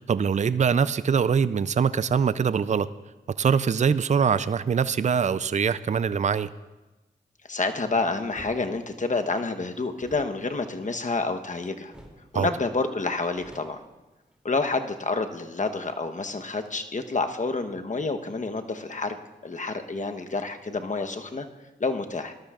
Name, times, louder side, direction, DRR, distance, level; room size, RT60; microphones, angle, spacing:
voice 1, 0.0-2.9 3.4-6.5 12.3-12.5, right 6 dB, 40° right, 15 dB, 0.4 m, -23 dB
voice 2, 7.5-11.9 12.3-13.8 14.4-19.2 19.4-21.5 21.8-22.3, left 3 dB, 45° left, 7 dB, 1.0 m, -28 dB
sound 1, 8.3-8.6 10.0-11.5 11.9-12.3 12.6-12.7 13.0-14.6, equal, 5° right, 2.7 m, -50 dB
19.0 x 12.5 x 2.4 m, 1.1 s
cardioid pair, 45°, 18 cm